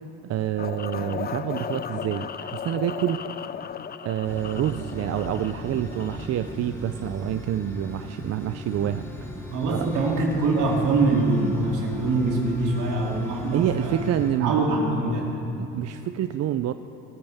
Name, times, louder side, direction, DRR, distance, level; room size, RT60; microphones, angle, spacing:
voice 1, 0.2-3.2 4.0-9.3 9.7-9.9 13.5-14.5 15.5-16.7, right 11 dB, 55° right, 10 dB, 0.6 m, -27 dB
sound 1, 0.6-6.5, left 7 dB, 30° left, 0.5 m, -35 dB
sound 2, 4.2-14.3, equal, 5° left, 3.4 m, -37 dB
voice 2, 9.5-14.1 14.4-15.3, right 2 dB, 75° right, -1 dB, 3.0 m, -24 dB
21.0 x 14.0 x 3.6 m, 2.8 s
supercardioid pair, 75°, 31 cm